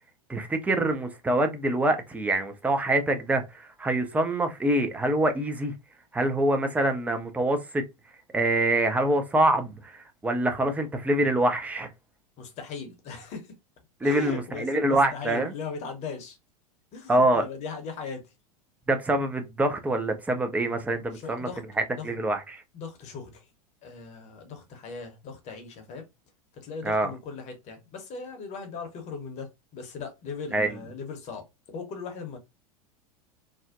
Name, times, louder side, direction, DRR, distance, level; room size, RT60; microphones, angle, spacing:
voice 1, 0.3-5.7 6.1-7.9 8.3-11.9 14.0-15.5 17.1-17.5 18.9-21.5 21.8-22.6 26.8-27.1 30.5-30.7, right 1 dB, 10° right, 0.4 m, -25 dB
voice 2, 12.4-13.5 14.0-16.4 16.9-18.3 21.1-21.6 22.0-22.1 22.7-23.5 23.8-26.0 26.5-32.4, left 5 dB, 35° left, 0.8 m, -38 dB
2.5 x 2.1 x 2.4 m
figure-of-eight pair, 90°, 19 cm